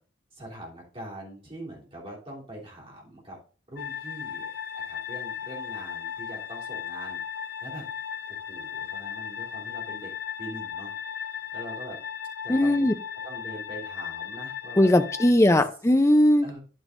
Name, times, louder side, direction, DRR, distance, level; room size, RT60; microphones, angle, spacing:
voice 1, 0.3-3.4 3.7-7.2 7.6-7.8 8.3-10.1 10.4-10.9 11.2-12.0 12.4-13.0 13.2-14.9 16.4-16.6, right 1 dB, 30° right, 3.3 m, -43 dB
sound 1, 3.8-15.3, left 8 dB, 50° left, 0.7 m, -36 dB
voice 2, 12.5-12.9 14.8-16.5, left 1 dB, 15° left, 0.5 m, -19 dB
11.0 x 8.9 x 2.6 m
head